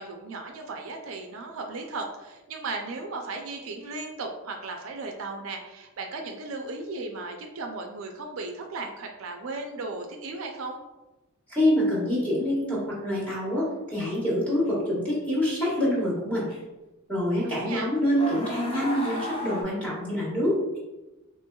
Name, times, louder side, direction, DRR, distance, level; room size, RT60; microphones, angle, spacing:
voice 1, 0.0-10.8 17.4-17.9, right 3 dB, 70° right, 3 dB, 0.4 m, -36 dB
voice 2, 11.5-16.5 17.1-20.8, equal, 5° left, -7 dB, 1.4 m, -26 dB
sound 1, 14.7-14.8 15.7-16.0 16.5-16.6 17.7-17.8 18.2-19.6, left 1 dB, 25° left, 0.7 m, -34 dB
4.4 x 2.9 x 2.2 m, 1.0 s
head